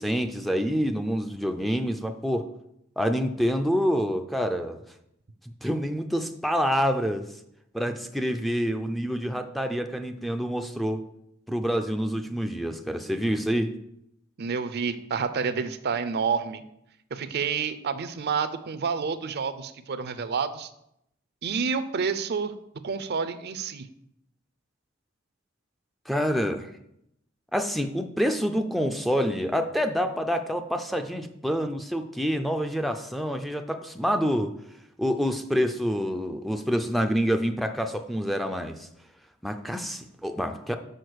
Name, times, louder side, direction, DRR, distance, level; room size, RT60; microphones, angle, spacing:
voice 1, 0.0-2.5 3.0-4.8 5.6-7.2 7.7-11.0 11.5-13.7 26.1-26.7 27.5-34.5 35.0-38.9 39.4-40.8, equal, ahead, 6 dB, 0.4 m, -27 dB
voice 2, 14.4-16.6 17.1-20.7 21.4-22.5 22.8-23.9, right 5 dB, 50° right, 12 dB, 0.5 m, -29 dB
6.5 x 5.0 x 6.2 m, 0.78 s
head